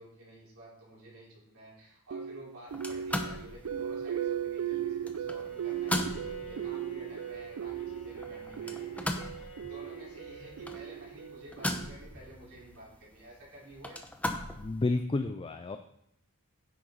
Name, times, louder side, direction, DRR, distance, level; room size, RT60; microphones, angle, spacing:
voice 1, 0.0-14.0, right 1 dB, 65° right, -6 dB, 4.3 m, -51 dB
sound 1, 2.1-12.2, right 9 dB, 85° right, 0.4 m, -37 dB
sound 2, 2.7-15.0, left 1 dB, 5° left, 0.8 m, -40 dB
Bowed string instrument, 5.4-10.9, left 3 dB, 85° left, 1.4 m, -53 dB
voice 2, 14.5-15.8, left 2 dB, 25° left, 8 dB, 0.4 m, -31 dB
9.9 x 7.6 x 4.0 m, 0.77 s
head